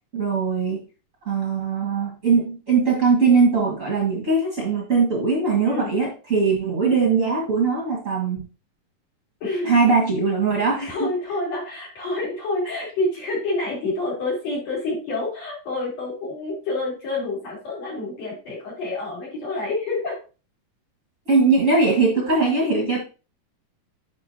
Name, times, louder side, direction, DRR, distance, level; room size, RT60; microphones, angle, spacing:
voice 1, 0.1-0.9 1.2-8.5 9.6-11.1 21.3-23.0, right 4 dB, 35° right, -3 dB, 1.3 m, -20 dB
voice 2, 9.4-9.7 10.5-20.1, left 2 dB, 50° left, -4 dB, 4.5 m, -28 dB
10.0 x 5.1 x 2.8 m, 0.34 s
omnidirectional pair, 3.9 m